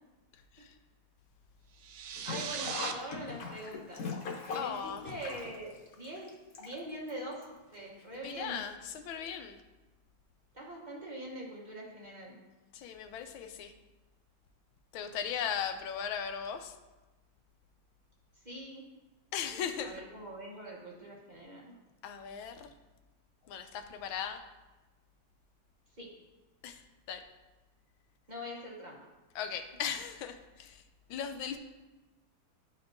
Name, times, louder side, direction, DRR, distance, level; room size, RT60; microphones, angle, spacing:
sound 1, 1.8-2.9, right 8 dB, 75° right, 0.9 m, -38 dB
Sink (filling or washing), 2.2-7.1 7.4-7.5 8.5-8.6 8.9-9.0, left 4 dB, 55° left, 1.2 m, -41 dB
voice 1, 2.2-4.0 4.5-6.3 6.6-7.4 7.7-8.6 10.5-12.4 18.4-18.8 19.8-21.7 26.0-26.1 28.3-29.0, right 1 dB, 35° right, -3 dB, 0.7 m, -43 dB
voice 2, 4.5-5.1 8.1-9.6 12.7-13.7 14.9-16.7 19.3-20.0 22.0-22.7 23.5-24.4 26.6-26.8 27.1-27.2 29.3-30.8 31.1-31.6, left 8 dB, 90° left, 7 dB, 1.4 m, -38 dB
12.0 x 4.3 x 2.6 m, 1.1 s
omnidirectional pair, 2.1 m